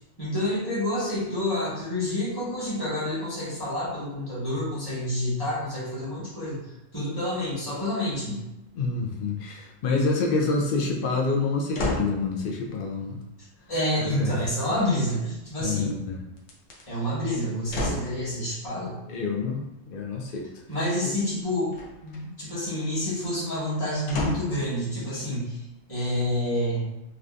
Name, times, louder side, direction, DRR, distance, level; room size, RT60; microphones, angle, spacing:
voice 1, 0.2-8.4 13.7-15.9 16.9-19.0 20.7-21.7 22.0-25.6 25.9-26.9, left 1 dB, 20° left, -9 dB, 1.3 m, -28 dB
voice 2, 8.7-13.2 14.0-14.3 15.6-16.2 19.1-20.5, left 3 dB, 60° left, -1 dB, 0.6 m, -27 dB
sound 1, 11.7-12.2 14.7-15.4 16.4-16.8 17.7-18.2 21.7-22.2 24.1-24.6 25.3-25.4, left 1 dB, 80° left, 1.0 m, -31 dB
3.3 x 2.6 x 2.4 m, 0.92 s
omnidirectional pair, 1.3 m